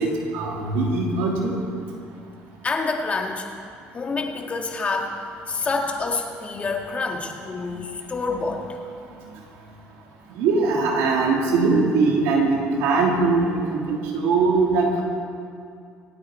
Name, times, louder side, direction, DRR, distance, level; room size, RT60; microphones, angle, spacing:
voice 1, 0.0-1.5 10.4-15.0, right 3 dB, 85° right, -1 dB, 3.0 m, -21 dB
voice 2, 2.6-3.5 3.9-5.1 5.5-8.6, left 3 dB, 30° left, 2 dB, 2.0 m, -27 dB
26.0 x 9.4 x 4.5 m, 2.3 s
cardioid pair, 110°, 4 cm